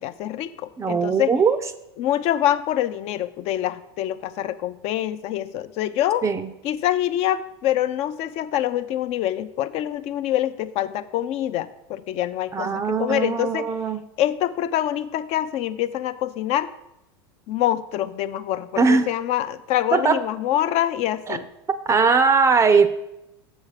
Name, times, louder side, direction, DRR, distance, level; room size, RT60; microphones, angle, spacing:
voice 1, 0.0-1.3 2.0-6.3 6.6-13.7 14.2-16.7 17.5-21.5, left 12 dB, 50° left, 13 dB, 0.5 m, -25 dB
voice 2, 0.8-1.6 6.2-6.5 12.5-14.0 18.8-19.1 19.9-20.2 21.3-21.4 21.7-22.9, right 5 dB, 20° right, 12 dB, 0.5 m, -20 dB
7.1 x 6.4 x 4.9 m, 0.88 s
hypercardioid pair, 105°, 13 cm